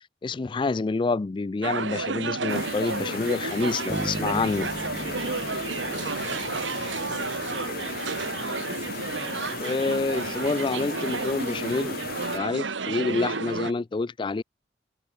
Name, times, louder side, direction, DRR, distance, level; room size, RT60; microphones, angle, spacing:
voice 1, 0.0-4.7 9.6-12.0 12.3-14.4, left 3 dB, 25° left, 0.3 m, -27 dB
sound 1, 1.6-13.7, right 4 dB, 85° right, 1.4 m, -31 dB
sound 2, 2.5-12.4, left 4 dB, 55° left, 2.3 m, -36 dB
sound 3, 3.9-6.9, equal, 20° right, 2.2 m, -37 dB
voice 2, 5.6-7.9, right 2 dB, 65° right, 5.3 m, -50 dB
head